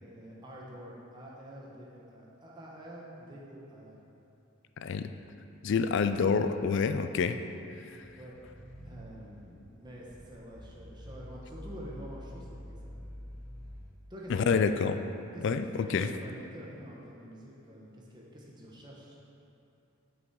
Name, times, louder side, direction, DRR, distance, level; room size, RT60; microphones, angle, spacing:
voice 1, 0.0-3.9 8.2-8.4 8.8-12.9 14.1-14.6 15.3-19.2, equal, 20° right, -4 dB, 1.0 m, -47 dB
voice 2, 4.8-5.1 5.6-7.4 14.3-15.0 15.4-16.1, left 5 dB, 60° left, 9 dB, 0.3 m, -27 dB
sound 1, 7.9-13.9, equal, 5° left, 1.2 m, -47 dB
6.2 x 6.1 x 4.6 m, 2.7 s
head